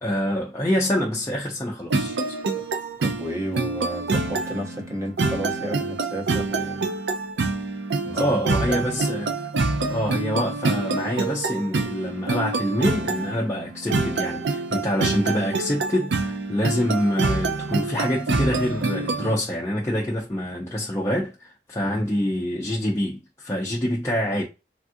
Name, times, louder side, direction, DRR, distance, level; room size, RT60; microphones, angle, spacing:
voice 1, 0.0-2.4 8.1-9.5 9.9-24.4, equal, 15° left, 0.5 m, -26 dB
sound 1, 1.9-19.3, right 3 dB, 80° right, 0.5 m, -26 dB
voice 2, 3.0-6.9 8.0-8.3 8.7-9.0 21.8-22.0, equal, 15° right, 0.8 m, -32 dB
3.4 x 2.4 x 2.6 m
head